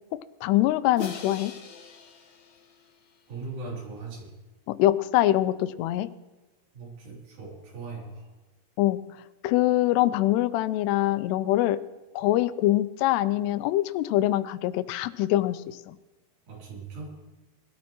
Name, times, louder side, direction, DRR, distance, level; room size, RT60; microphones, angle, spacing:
voice 1, 0.4-1.5 4.7-6.1 8.8-9.0 9.4-11.8 12.2-16.0, left 14 dB, 85° left, 14 dB, 2.7 m, -24 dB
Crash cymbal, 1.0-3.2, left 6 dB, 65° left, 1.9 m, -42 dB
voice 2, 3.3-4.3 6.7-8.3 16.5-17.2, right 3 dB, 75° right, -3 dB, 5.2 m, -39 dB
21.5 x 13.0 x 3.0 m, 1.2 s
omnidirectional pair, 4.7 m